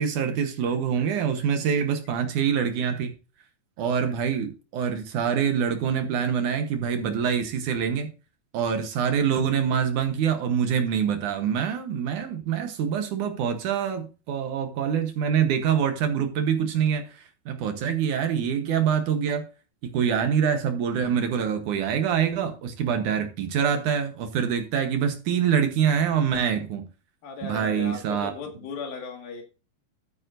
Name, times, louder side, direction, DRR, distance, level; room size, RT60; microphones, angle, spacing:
voice 1, 0.0-3.1 3.8-8.1 8.5-19.5 19.8-26.9 27.4-28.3, right 7 dB, 70° right, 2.3 m, -25 dB
voice 2, 27.2-29.4, left 5 dB, 75° left, 3.7 m, -36 dB
12.5 x 9.2 x 2.6 m
omnidirectional pair, 4.2 m